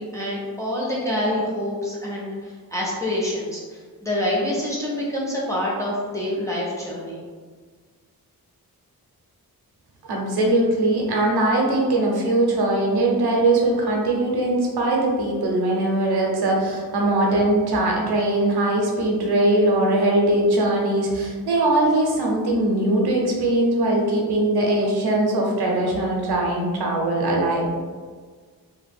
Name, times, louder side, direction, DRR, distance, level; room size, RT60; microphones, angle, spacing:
voice 1, 0.0-7.2, left 1 dB, 10° left, -6 dB, 0.6 m, -26 dB
voice 2, 10.1-27.7, right 1 dB, 90° right, -1 dB, 0.7 m, -21 dB
2.9 x 2.2 x 3.3 m, 1.5 s
wide cardioid pair, 175°, 37 cm